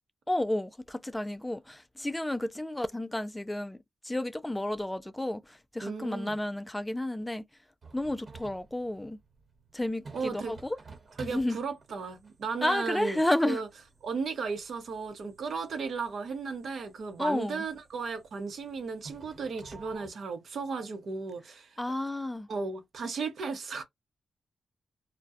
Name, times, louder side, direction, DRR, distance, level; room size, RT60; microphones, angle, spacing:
voice 1, 0.3-3.8 4.0-7.4 7.9-9.2 9.7-10.8 11.2-11.6 12.6-13.6 17.2-17.6 21.8-22.5, left 1 dB, 10° left, 0.4 m, -31 dB
voice 2, 5.8-6.4 10.1-10.5 11.2-13.7 14.0-21.8 22.5-23.8, right 4 dB, 70° right, 0.7 m, -35 dB
sound 1, 7.8-20.1, right 3 dB, 45° right, 1.1 m, -53 dB
2.3 x 2.1 x 2.6 m
cardioid pair, 65°, 0 cm